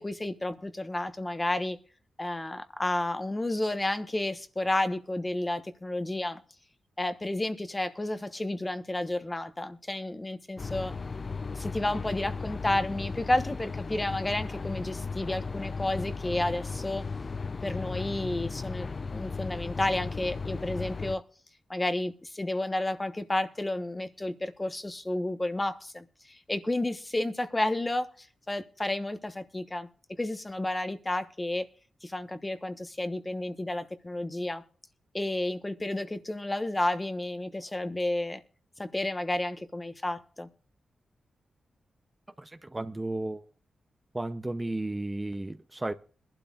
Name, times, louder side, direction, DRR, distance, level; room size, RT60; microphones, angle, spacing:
voice 1, 0.0-1.8 2.2-6.4 7.0-10.9 11.5-17.1 17.6-21.2 21.7-29.9 30.2-31.6 32.0-34.6 35.1-38.4 38.8-40.5, left 1 dB, 20° left, 1.2 m, -31 dB
sound 1, 10.6-21.2, left 4 dB, 40° left, 0.5 m, -36 dB
voice 2, 42.4-43.4 44.1-45.9, right 2 dB, 15° right, 0.6 m, -33 dB
21.5 x 12.0 x 2.5 m
cardioid pair, 80°, 0 cm